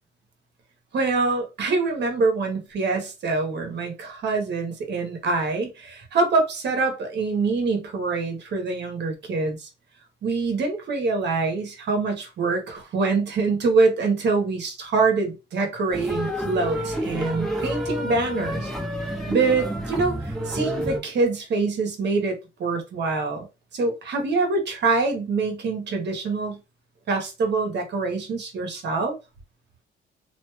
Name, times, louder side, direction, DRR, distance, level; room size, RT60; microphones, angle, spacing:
voice 1, 0.9-9.7 10.2-18.7 19.3-23.5 23.7-26.6 27.1-29.2, right 3 dB, 60° right, 1.1 m, -25 dB
sound 1, 15.9-21.0, equal, ahead, 1.1 m, -29 dB
3.0 x 2.6 x 2.3 m
cardioid pair, 90°, 20 cm